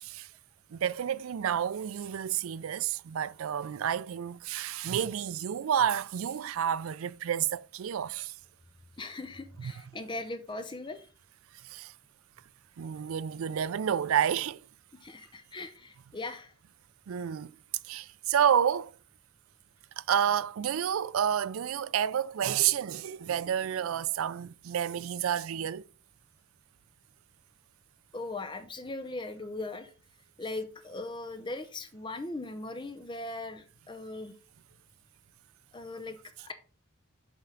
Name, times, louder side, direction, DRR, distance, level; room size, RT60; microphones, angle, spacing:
voice 1, 0.7-8.3 11.6-11.9 12.8-14.6 17.1-17.5 17.9-18.9 20.0-25.8, right 9 dB, 75° right, 0.4 m, -30 dB
voice 2, 9.0-11.1 15.0-16.5 28.1-29.9 30.4-34.3 35.7-36.5, left 2 dB, 20° left, 0.7 m, -39 dB
7.3 x 5.7 x 3.8 m
head